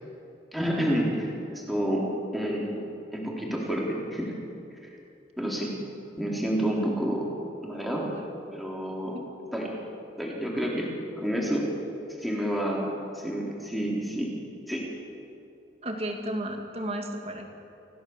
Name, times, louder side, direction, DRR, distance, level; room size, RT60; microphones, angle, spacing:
voice 1, 0.5-2.8 3.1-4.3 5.4-5.7 6.2-7.3 7.6-8.1 8.5-9.2 9.5-9.7 10.2-10.9 11.2-11.7 12.2-14.3 14.7-14.9, equal, ahead, -3 dB, 3.8 m, -29 dB
voice 2, 15.8-17.5, right 1 dB, 35° right, 3 dB, 2.3 m, -33 dB
26.5 x 16.5 x 7.3 m, 2.8 s
head